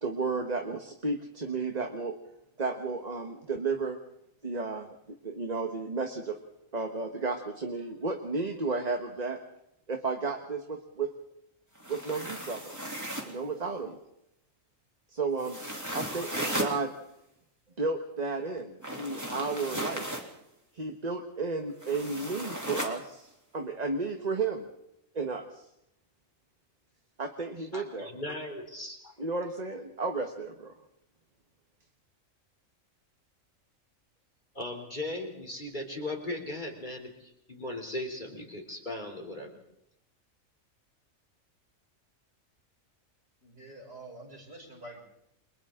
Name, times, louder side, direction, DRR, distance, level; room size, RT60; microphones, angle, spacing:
voice 1, 0.0-2.2 2.6-4.0 4.4-5.0 5.2-6.4 6.7-9.4 9.9-11.1 11.9-12.8 13.2-14.0 15.1-15.6 15.9-16.9 17.8-20.1 20.7-24.7 25.1-25.6 27.2-28.1 29.2-30.7, right 3 dB, 30° right, 5 dB, 1.5 m, -33 dB
sound 1, 11.7-13.4 15.4-16.8 18.8-20.3 21.8-23.0, right 1 dB, 10° right, 2.9 m, -36 dB
voice 2, 27.7-29.1 34.6-39.6, left 1 dB, 35° left, 2 dB, 3.5 m, -38 dB
voice 3, 43.4-45.0, right 1 dB, 45° right, -2 dB, 6.9 m, -47 dB
29.5 x 23.5 x 3.8 m, 0.79 s
omnidirectional pair, 1.4 m